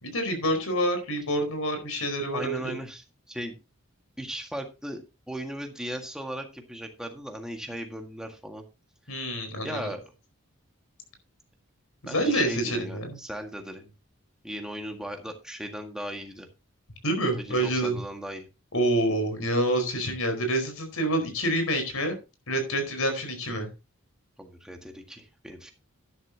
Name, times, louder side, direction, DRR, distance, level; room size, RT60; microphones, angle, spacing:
voice 1, 0.0-2.8 9.1-9.9 12.0-13.2 17.0-18.0 18.7-22.2 22.5-23.7, right 1 dB, 85° left, 6 dB, 4.7 m, -27 dB
voice 2, 2.3-3.6 4.2-8.6 9.1-9.2 9.6-10.0 12.1-13.9 14.4-16.5 17.3-18.5 24.4-25.7, equal, 5° right, 3 dB, 1.8 m, -37 dB
12.0 x 11.0 x 2.9 m, 0.28 s
head